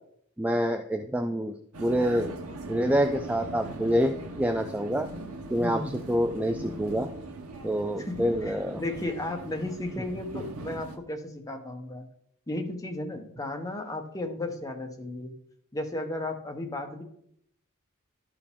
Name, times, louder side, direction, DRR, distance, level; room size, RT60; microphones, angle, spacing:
voice 1, 0.4-1.5 1.8-2.3 2.7-5.1 5.5-7.1 7.6-8.8, equal, 5° right, 6 dB, 0.3 m, -27 dB
Vehicle, 1.7-11.0, right 2 dB, 85° right, 0.9 m, -40 dB
voice 2, 5.6-5.9 7.9-12.1 12.5-15.3 15.7-17.0, left 2 dB, 15° left, 4 dB, 0.9 m, -34 dB
11.5 x 4.8 x 3.5 m, 0.70 s
head